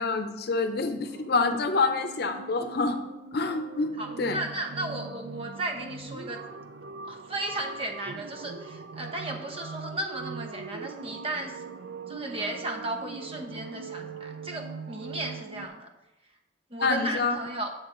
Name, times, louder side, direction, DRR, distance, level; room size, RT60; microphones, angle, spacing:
voice 1, 0.0-3.0 3.3-3.9 4.2-4.4 16.8-17.4, left 3 dB, 60° left, 8 dB, 0.7 m, -27 dB
sound 1, 1.0-15.7, right 4 dB, 80° right, 0.4 m, -41 dB
voice 2, 4.0-6.4 7.1-11.6 12.1-15.9 16.7-17.7, right 2 dB, 35° right, 3 dB, 0.9 m, -35 dB
8.0 x 6.1 x 3.8 m, 0.99 s
head